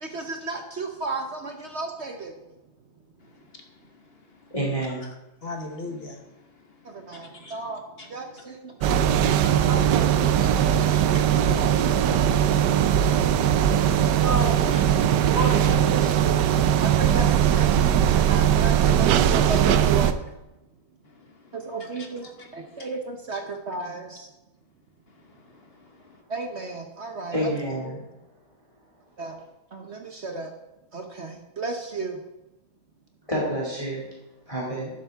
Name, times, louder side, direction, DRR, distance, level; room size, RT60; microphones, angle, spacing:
voice 1, 0.0-2.3 6.8-7.8 8.1-8.7 9.7-11.0 14.2-14.6 15.3-16.4 16.8-20.1 21.5-22.3 22.5-24.3 26.3-27.6 29.2-29.4 29.7-30.5 30.9-32.2, right 3 dB, 50° right, 0.9 m, -33 dB
voice 2, 3.5-4.5 5.4-6.3 6.9-7.6 8.0-8.1 8.8-9.7 10.4-11.2 14.7-14.9 21.3-21.5 21.8-22.8 25.4-25.5 25.8-26.1, left 3 dB, 40° left, 1.0 m, -44 dB
voice 3, 4.5-5.0 27.3-28.0 33.3-34.1 34.5-34.9, right 1 dB, 15° left, 2.1 m, -28 dB
sound 1, 8.8-20.1, right 9 dB, 70° right, 1.1 m, -20 dB
11.5 x 7.5 x 3.5 m
omnidirectional pair, 2.1 m